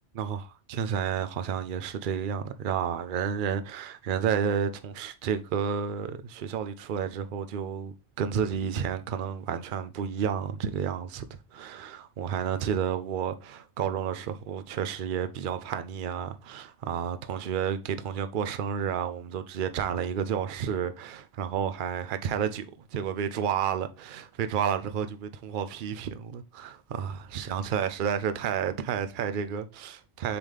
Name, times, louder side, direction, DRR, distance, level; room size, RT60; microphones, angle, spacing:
voice 1, 0.1-11.2 11.5-30.4, right 8 dB, 55° right, 0.7 m, -31 dB
7.0 x 3.9 x 3.4 m
omnidirectional pair, 1.2 m